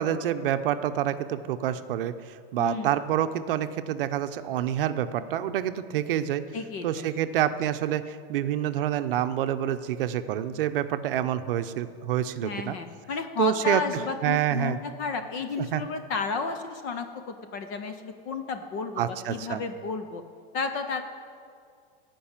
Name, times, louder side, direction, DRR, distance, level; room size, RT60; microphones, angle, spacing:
voice 1, 0.0-6.4 6.8-12.8 13.4-13.8 14.2-14.8 15.7-15.8 19.0-19.6, right 11 dB, 65° right, 11 dB, 0.7 m, -27 dB
voice 2, 2.6-2.9 6.5-7.0 12.4-20.2 20.5-21.0, left 4 dB, 20° left, 7 dB, 0.3 m, -32 dB
15.5 x 5.4 x 8.7 m, 2.3 s
supercardioid pair, 170°, 30 cm